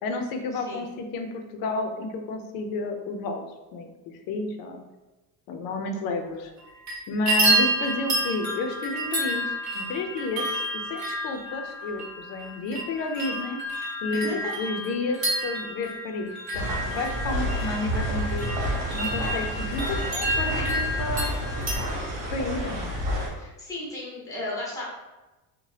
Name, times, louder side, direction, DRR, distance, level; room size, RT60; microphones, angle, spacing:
voice 1, 0.0-3.4 3.7-4.8 5.5-6.5 7.1-18.5 18.9-21.3 22.3-22.9, left 3 dB, 55° left, 5 dB, 0.5 m, -31 dB
voice 2, 0.5-0.8 6.1-6.2 14.1-14.5 20.5-20.7 23.4-24.8, left 2 dB, 10° left, -5 dB, 0.7 m, -35 dB
sound 1, 6.6-7.0 7.3-21.8, right 1 dB, 40° right, 0.9 m, -29 dB
sound 2, 16.5-23.3, right 1 dB, 65° right, 1.1 m, -29 dB
2.7 x 2.1 x 3.2 m, 1.1 s
cardioid pair, 145°, 43 cm